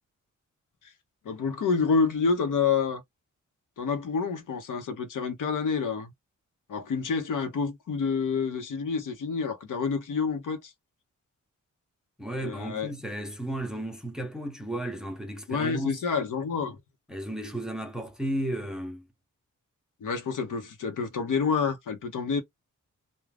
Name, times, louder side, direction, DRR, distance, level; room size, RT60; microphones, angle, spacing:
voice 1, 1.2-3.0 3.8-6.1 6.7-10.7 12.4-12.9 15.5-16.8 20.0-22.4, left 5 dB, 80° left, 0.8 m, -28 dB
voice 2, 12.2-16.0 17.1-19.1, right 1 dB, ahead, 0.6 m, -34 dB
2.4 x 2.2 x 3.2 m
wide cardioid pair, 125°, 31 cm